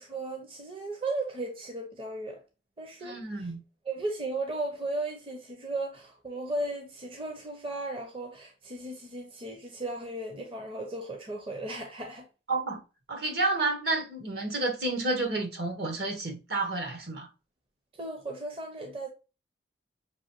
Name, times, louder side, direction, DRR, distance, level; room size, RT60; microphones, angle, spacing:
voice 1, 0.0-2.4 2.8-3.5 3.9-12.3 18.0-19.1, right 2 dB, 30° right, 0.7 m, -36 dB
voice 2, 3.0-3.6 12.5-12.8 13.1-17.3, right 2 dB, 60° right, 1.2 m, -30 dB
6.0 x 2.6 x 2.9 m
head